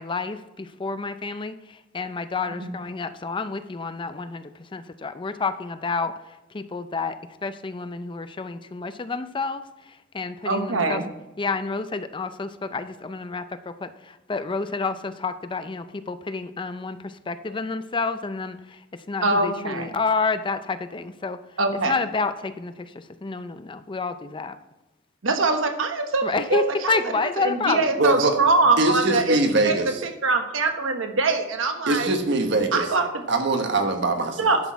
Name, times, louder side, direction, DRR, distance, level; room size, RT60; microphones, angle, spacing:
voice 1, 0.0-11.0 11.4-24.6 26.2-28.0, left 4 dB, 25° left, 11 dB, 0.5 m, -29 dB
voice 2, 10.5-11.0 19.2-19.9 21.6-21.9 25.2-26.2 26.5-27.0 27.4-29.4 29.6-29.8 30.0-32.1 32.7-33.1 34.2-34.6, right 3 dB, 85° right, 5 dB, 1.2 m, -23 dB
voice 3, 28.0-28.4 28.8-30.0 31.9-32.9 33.3-34.6, right 2 dB, 65° right, 5 dB, 1.3 m, -22 dB
10.5 x 6.2 x 4.6 m, 0.99 s
head